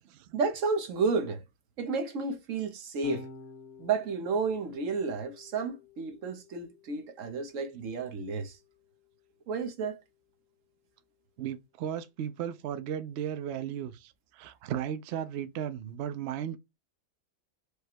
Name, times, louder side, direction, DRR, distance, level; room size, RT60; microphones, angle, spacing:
voice 1, 0.3-1.4 1.8-3.3 3.8-8.6 9.5-10.0, right 4 dB, 60° right, 1.1 m, -31 dB
Electric guitar / Bass guitar, 3.0-9.4, left 3 dB, 75° left, 1.2 m, -51 dB
voice 2, 11.4-16.6, right 9 dB, 75° right, 0.6 m, -35 dB
4.9 x 2.2 x 4.4 m
omnidirectional pair, 1.7 m